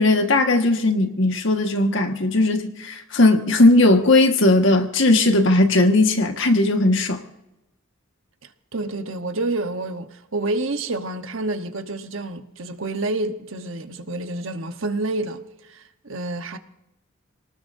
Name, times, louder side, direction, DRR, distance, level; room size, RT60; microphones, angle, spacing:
voice 1, 0.0-7.2, left 2 dB, 60° left, 1.7 m, -18 dB
voice 2, 8.7-16.6, right 2 dB, 70° right, 1.2 m, -28 dB
28.0 x 19.0 x 2.7 m
head